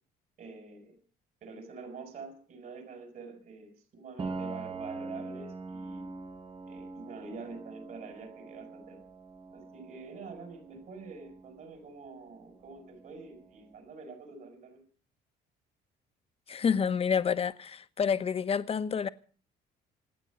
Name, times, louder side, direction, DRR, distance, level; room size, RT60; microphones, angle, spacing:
voice 1, 0.4-1.0 1.4-6.1 6.7-9.0 9.5-14.8, right 4 dB, 55° right, 6.1 m, -46 dB
Piano, 4.2-13.8, right 3 dB, 30° right, 1.4 m, -44 dB
voice 2, 16.5-19.1, left 6 dB, 35° left, 1.1 m, -28 dB
27.0 x 9.1 x 5.3 m
cardioid pair, 110°, 17 cm